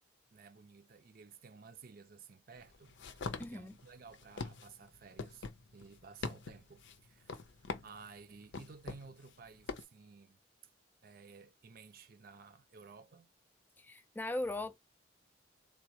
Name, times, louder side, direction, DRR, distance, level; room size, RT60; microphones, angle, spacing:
voice 1, 0.3-7.6 7.8-10.4 11.0-13.3, right 5 dB, 55° right, 0.5 m, -55 dB
sound 1, 2.6-9.8, left 4 dB, 70° left, 0.6 m, -44 dB
voice 2, 3.4-3.8 13.8-14.8, left 2 dB, 10° left, 0.4 m, -39 dB
3.7 x 2.2 x 2.8 m
head